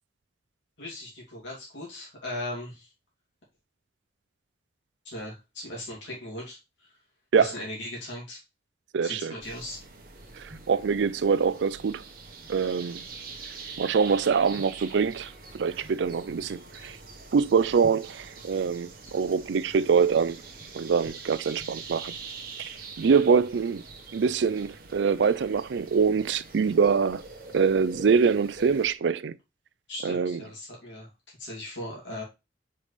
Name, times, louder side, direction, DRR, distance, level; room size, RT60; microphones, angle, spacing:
voice 1, 0.8-2.9 5.0-6.6 7.4-8.4 9.0-9.8 29.9-31.1 31.4-32.2, left 1 dB, 90° left, 2.5 m, -38 dB
voice 2, 8.9-9.3 10.4-12.0 12.5-13.0 13.8-17.0 17.3-20.4 20.7-22.1 23.0-23.8 24.1-27.2 27.5-29.3 30.0-30.4, right 5 dB, 80° right, 0.4 m, -24 dB
sound 1, 9.4-28.9, right 4 dB, 50° right, 1.1 m, -44 dB
5.5 x 5.1 x 3.3 m
head